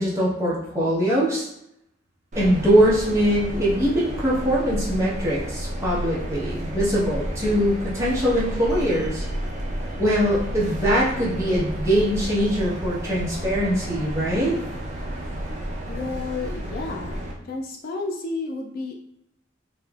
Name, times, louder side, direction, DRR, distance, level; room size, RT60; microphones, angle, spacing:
voice 1, 0.0-1.5 2.3-9.2 10.0-14.5, equal, 15° right, -8 dB, 0.9 m, -22 dB
sound 1, 2.3-17.3, right 1 dB, 35° right, 0.6 m, -31 dB
voice 2, 15.9-17.2 17.4-19.0, left 3 dB, 50° left, 1 dB, 0.3 m, -31 dB
3.1 x 2.9 x 2.3 m, 0.77 s
head